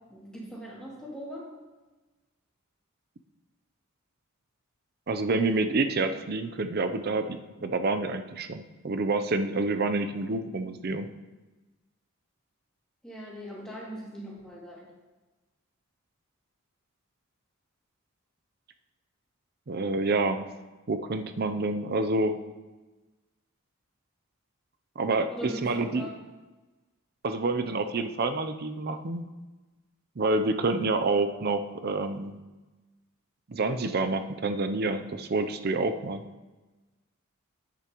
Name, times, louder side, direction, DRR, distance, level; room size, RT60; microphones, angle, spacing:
voice 1, 0.1-1.4 13.0-14.9 25.3-26.1, equal, 5° left, -6 dB, 2.4 m, -40 dB
voice 2, 5.1-11.1 19.7-20.5 20.9-22.4 25.0-26.1 27.2-29.3 30.2-32.4 33.5-36.2, right 3 dB, 45° right, 8 dB, 0.5 m, -28 dB
9.9 x 9.2 x 3.0 m, 1.2 s
head